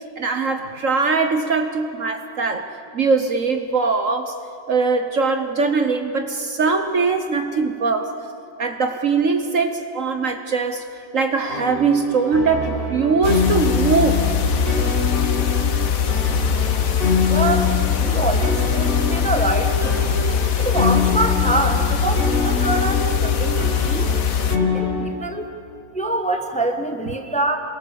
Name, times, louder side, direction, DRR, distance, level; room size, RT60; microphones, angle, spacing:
voice 1, 0.2-4.4 4.7-8.2 8.6-10.9 11.1-14.3, right 4 dB, 55° right, 7 dB, 1.4 m, -21 dB
sound 1, 11.5-24.9, left 2 dB, 30° right, 6.4 m, -25 dB
sound 2, 13.2-24.6, left 9 dB, 60° left, 1.4 m, -21 dB
voice 2, 17.3-20.0 20.6-24.1 24.7-25.5 25.9-27.6, right 2 dB, 5° left, 4 dB, 1.3 m, -25 dB
27.5 x 23.0 x 7.2 m, 2.6 s
omnidirectional pair, 1.8 m